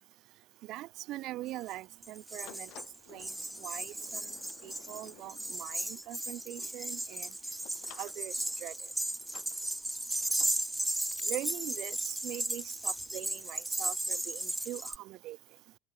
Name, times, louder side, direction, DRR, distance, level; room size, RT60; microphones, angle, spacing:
voice 1, 0.7-2.7 3.1-3.3 3.6-4.2 4.6-7.3 8.0-8.7 11.3-15.4, right 16 dB, 40° right, 2.0 m, -42 dB
sound 1, 1.7-1.8 2.0-15.0, right 1 dB, 5° right, 0.3 m, -36 dB
sound 2, 2.4-11.6, left 16 dB, 40° left, 1.3 m, -57 dB
open air
cardioid pair, 170°, 0 cm